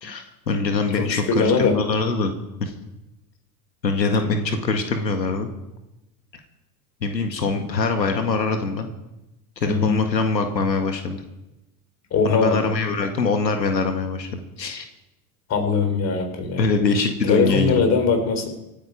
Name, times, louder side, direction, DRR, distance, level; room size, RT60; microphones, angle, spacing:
voice 1, 0.0-2.3 2.6-2.7 3.8-5.5 7.0-8.9 9.6-11.2 12.2-14.9 16.6-17.8, left 4 dB, 90° left, 5 dB, 1.9 m, -23 dB
voice 2, 1.0-1.8 9.6-9.9 12.1-12.6 15.5-16.6 17.3-18.5, left 4 dB, 30° left, 5 dB, 4.1 m, -21 dB
26.5 x 9.5 x 4.9 m, 0.94 s
hypercardioid pair, 95°, 49 cm